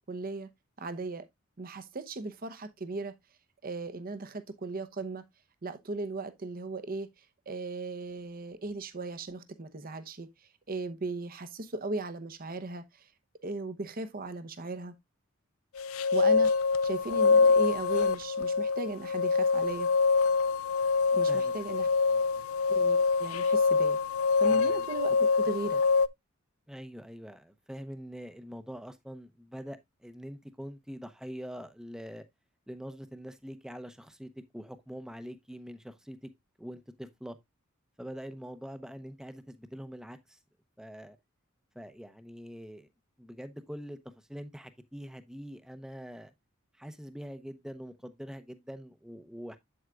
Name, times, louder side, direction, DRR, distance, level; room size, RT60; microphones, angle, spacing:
voice 1, 0.1-0.5 0.8-1.3 1.6-3.1 3.6-5.2 5.6-7.1 7.5-10.3 10.7-13.1 13.4-14.9 16.1-16.5 16.8-19.9 21.1-21.9 22.7-24.0 24.4-25.8, right 2 dB, 45° right, 0.9 m, -37 dB
sound 1, 15.8-26.1, left 4 dB, 75° left, 0.4 m, -25 dB
voice 2, 24.5-24.9 26.7-32.2 32.7-36.3 36.6-37.4 38.0-40.4 40.8-41.2 41.7-42.9 43.2-46.3 46.8-49.6, equal, 5° right, 0.7 m, -44 dB
8.0 x 7.8 x 2.4 m
head